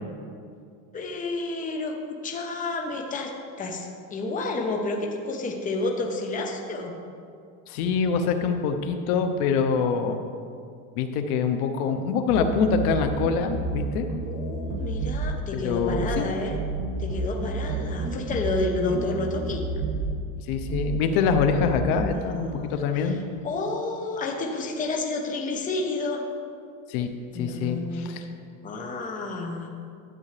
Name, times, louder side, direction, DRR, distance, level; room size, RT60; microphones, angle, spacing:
voice 1, 0.9-3.3 3.6-6.9 14.2-16.6 17.0-19.6 22.1-23.2 23.4-26.2 27.3-28.1 28.6-29.7, left 3 dB, 20° left, 1 dB, 0.8 m, -30 dB
voice 2, 7.7-10.2 11.0-14.1 15.5-16.3 18.9-19.0 20.5-23.2 26.9-28.2, left 5 dB, 75° left, 7 dB, 0.9 m, -25 dB
sound 1, 12.3-13.8 14.1-15.3 15.9-16.2 16.5-18.6 18.9-20.1 20.7-21.0 21.3-21.9, right 3 dB, 80° right, 1.8 m, -30 dB
12.5 x 8.4 x 3.3 m, 2.3 s
cardioid pair, 150°, 44 cm